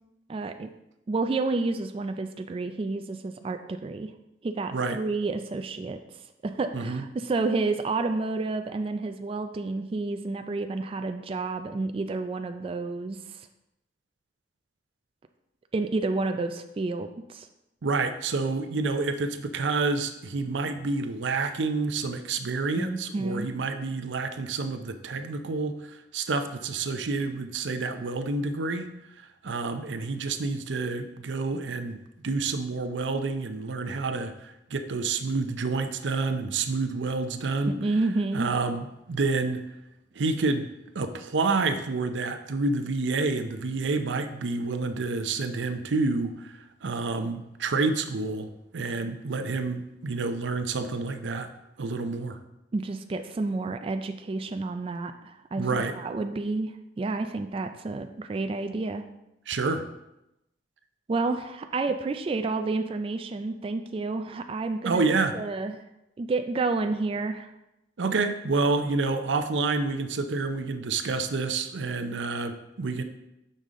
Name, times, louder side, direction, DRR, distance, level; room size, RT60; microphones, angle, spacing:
voice 1, 0.3-0.7 1.1-4.1 4.4-13.5 15.7-17.5 22.7-23.5 37.7-38.5 52.7-59.0 61.1-65.1 65.3-65.8 66.2-67.5, right 3 dB, 30° right, 7 dB, 0.3 m, -30 dB
voice 2, 17.8-28.9 29.2-37.7 38.3-39.6 40.1-40.7 40.9-51.5 51.8-52.4 55.6-55.9 59.5-59.8 64.8-65.4 68.0-73.0, right 3 dB, 85° right, 8 dB, 0.6 m, -28 dB
6.5 x 5.4 x 3.7 m, 0.89 s
head